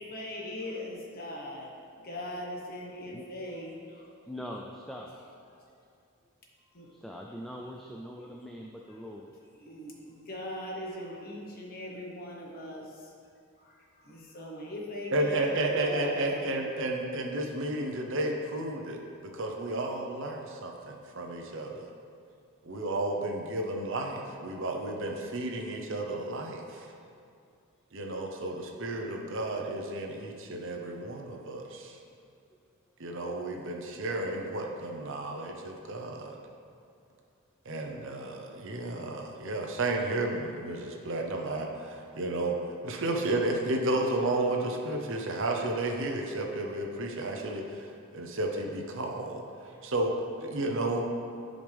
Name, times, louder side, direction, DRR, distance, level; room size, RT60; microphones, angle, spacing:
voice 1, 0.0-1.7 2.0-4.1 5.5-5.7 6.6-6.9 8.9-9.0 9.6-13.1 13.6-16.6, left 1 dB, 40° left, -2 dB, 1.2 m, -40 dB
voice 2, 4.3-5.1 6.9-9.3 28.1-28.4, equal, ahead, -1 dB, 0.3 m, -42 dB
voice 3, 15.1-21.8 22.6-26.8 27.9-32.0 33.0-36.4 37.6-42.5 42.8-49.4 49.8-50.1 50.4-51.1, right 2 dB, 60° right, 2 dB, 0.9 m, -32 dB
11.5 x 5.2 x 3.5 m, 2.5 s
head